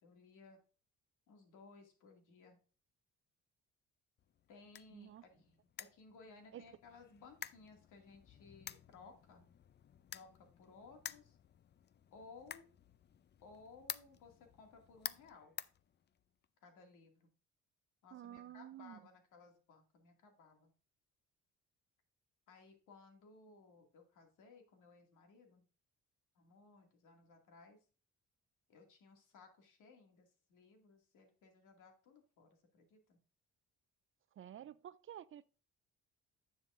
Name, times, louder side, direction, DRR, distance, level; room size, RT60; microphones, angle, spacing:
voice 1, 0.0-0.6 1.3-2.6 4.5-9.5 10.1-11.4 12.1-12.7 13.4-15.6 16.6-17.3 18.0-20.7 22.5-25.7 26.3-27.8 28.7-33.2, left 4 dB, 85° left, 2.2 m, -60 dB
sound 1, 4.2-16.5, left 9 dB, 35° left, 0.4 m, -52 dB
voice 2, 4.9-5.2 6.5-6.6 18.1-19.0 34.4-35.5, right 11 dB, 45° right, 0.4 m, -51 dB
10.0 x 7.1 x 2.5 m
cardioid pair, 90°, 30 cm